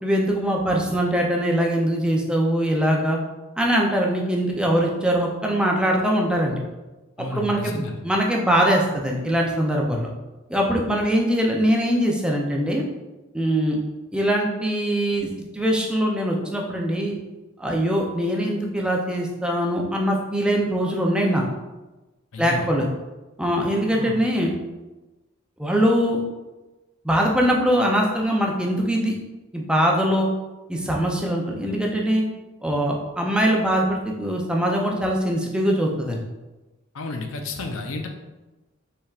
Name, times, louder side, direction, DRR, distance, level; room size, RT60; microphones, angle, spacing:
voice 1, 0.0-3.2 3.6-6.6 7.2-10.1 10.5-12.8 13.3-13.8 14.1-15.3 15.5-17.2 17.6-21.4 22.4-22.9 23.4-24.5 25.6-26.2 27.0-29.1 29.5-30.3 30.7-32.2 32.6-36.2, equal, 5° right, -1 dB, 0.5 m, -22 dB
voice 2, 7.2-8.0 22.3-22.7 23.9-24.2 36.9-38.1, left 2 dB, 80° left, 4 dB, 0.6 m, -31 dB
5.4 x 3.5 x 2.4 m, 1.1 s
head